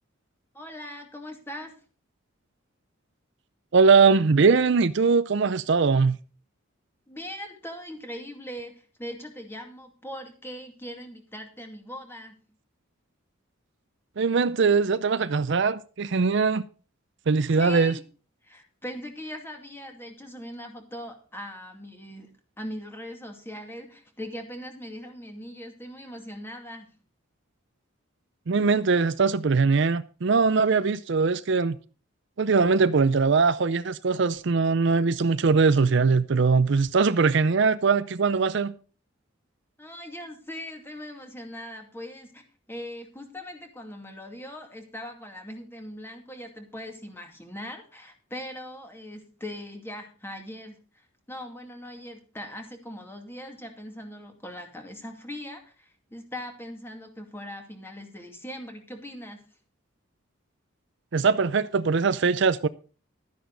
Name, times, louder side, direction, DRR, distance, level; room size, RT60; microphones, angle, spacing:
voice 1, 0.5-1.7 7.1-12.4 17.5-18.0 18.4-26.9 39.8-59.4, equal, 10° left, 2.3 m, -40 dB
voice 2, 3.7-6.2 14.2-16.6 17.3-18.0 28.5-31.8 32.4-38.7 61.1-62.7, right 4 dB, 60° right, 0.5 m, -21 dB
12.5 x 10.0 x 4.0 m
head